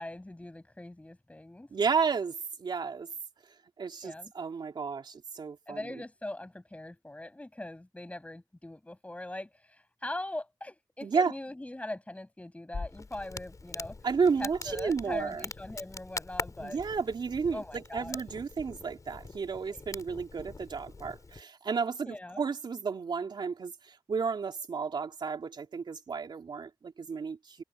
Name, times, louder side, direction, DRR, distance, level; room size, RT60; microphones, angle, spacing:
voice 1, 0.0-1.7 4.0-4.3 5.7-14.0 14.4-16.8 17.5-18.2 19.7-19.8 22.1-22.5, left 1 dB, 15° left, 7.3 m, -41 dB
voice 2, 1.7-3.1 3.8-5.8 11.0-11.3 14.0-15.5 16.6-27.6, right 5 dB, 75° right, 3.2 m, -32 dB
Crackle, 12.7-21.4, left 3 dB, 45° left, 6.5 m, -43 dB
wide cardioid pair, 85°, 8 cm